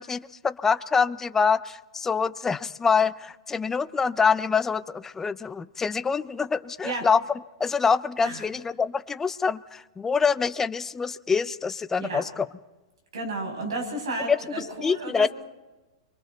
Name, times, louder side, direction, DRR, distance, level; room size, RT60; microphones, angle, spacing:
voice 1, 0.0-7.2 7.6-12.5 14.3-15.3, left 5 dB, 15° left, 13 dB, 0.7 m, -25 dB
voice 2, 13.1-15.3, right 2 dB, 90° right, 1 dB, 6.8 m, -32 dB
29.0 x 24.0 x 4.0 m, 1.1 s
hypercardioid pair, 125°, 3 cm